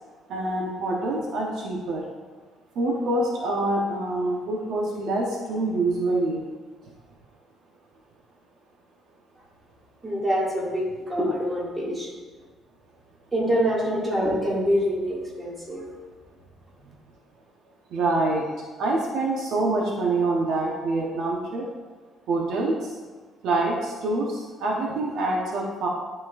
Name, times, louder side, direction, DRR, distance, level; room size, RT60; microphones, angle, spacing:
voice 1, 0.3-2.0 2.7-6.4 17.9-18.5 18.8-21.7 22.3-23.0 23.4-25.9, right 2 dB, 65° right, -1 dB, 1.0 m, -26 dB
voice 2, 10.0-12.1 13.3-15.9 16.8-16.9, equal, 15° right, -5 dB, 2.0 m, -25 dB
11.0 x 4.3 x 2.5 m, 1.4 s
cardioid pair, 140°, 0 cm